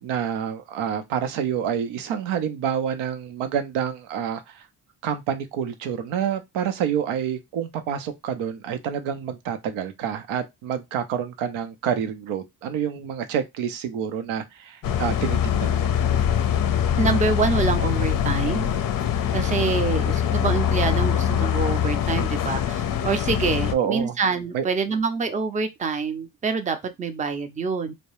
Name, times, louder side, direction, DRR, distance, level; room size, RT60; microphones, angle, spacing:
voice 1, 0.0-4.6 5.0-15.9 19.7-20.0 23.7-24.1 24.5-24.6, right 8 dB, 80° right, 0.6 m, -28 dB
sound 1, 14.8-23.7, left 9 dB, 45° left, 0.5 m, -23 dB
voice 2, 17.0-18.7 19.3-27.9, right 4 dB, 15° right, 0.5 m, -26 dB
2.2 x 2.0 x 2.9 m
supercardioid pair, 50°, 48 cm